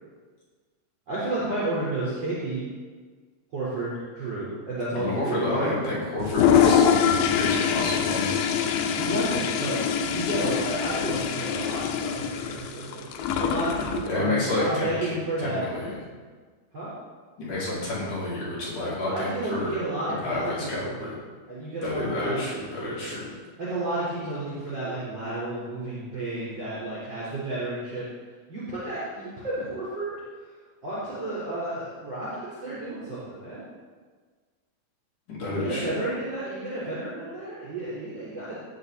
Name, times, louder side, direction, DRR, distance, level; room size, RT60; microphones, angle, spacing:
voice 1, 1.1-2.6 3.5-5.8 9.0-15.6 16.7-16.9 18.7-21.1 21.5-22.8 23.0-23.1 23.6-28.0 28.5-30.1 30.8-32.3 32.6-33.6 35.5-38.6, right 2 dB, 25° right, -10 dB, 4.1 m, -31 dB
voice 2, 5.0-6.8 7.3-8.4 14.1-14.9 15.4-16.0 17.4-19.8 20.2-21.2 21.8-23.3 35.3-35.9, left 2 dB, 45° left, -7 dB, 3.7 m, -29 dB
Toilet flush, 6.2-14.1, left 7 dB, 85° left, 3.2 m, -24 dB
18.5 x 6.8 x 4.1 m, 1.5 s
omnidirectional pair, 5.5 m